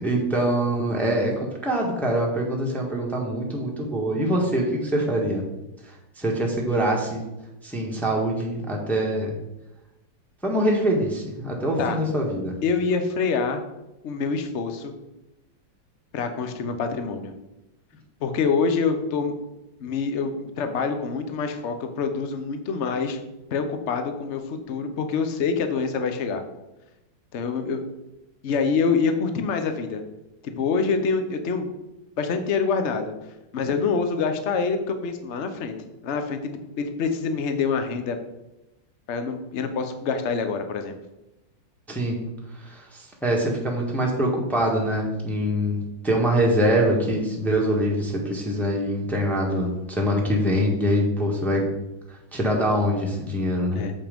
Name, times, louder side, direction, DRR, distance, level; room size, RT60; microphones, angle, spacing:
voice 1, 0.0-1.3 1.6-5.4 5.8-7.2 7.6-9.3 10.4-12.5 41.9-42.2 42.6-51.7 52.3-53.8, equal, ahead, -1 dB, 1.3 m, -24 dB
voice 2, 12.6-13.6 14.0-14.9 16.1-17.3 18.2-19.3 19.8-23.2 23.5-26.4 27.3-27.8 28.4-30.0 30.4-31.7 32.2-33.1 33.5-35.7 36.0-38.2 39.1-41.0 53.7-53.9, left 5 dB, 50° left, 7 dB, 0.9 m, -26 dB
7.4 x 5.5 x 5.3 m, 0.96 s
omnidirectional pair, 2.1 m